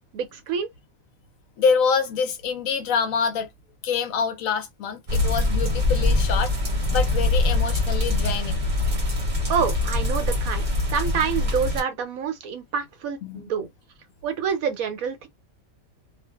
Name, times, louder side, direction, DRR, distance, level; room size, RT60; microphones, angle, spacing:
voice 1, 0.1-0.7 9.5-13.7 14.2-15.3, right 7 dB, 80° right, 1.1 m, -27 dB
voice 2, 1.6-3.5 3.8-6.5 6.9-8.6 13.2-13.4, left 6 dB, 75° left, 1.1 m, -25 dB
sound 1, 5.1-11.8, left 2 dB, 35° right, 1.0 m, -23 dB
2.5 x 2.4 x 2.3 m
omnidirectional pair, 1.5 m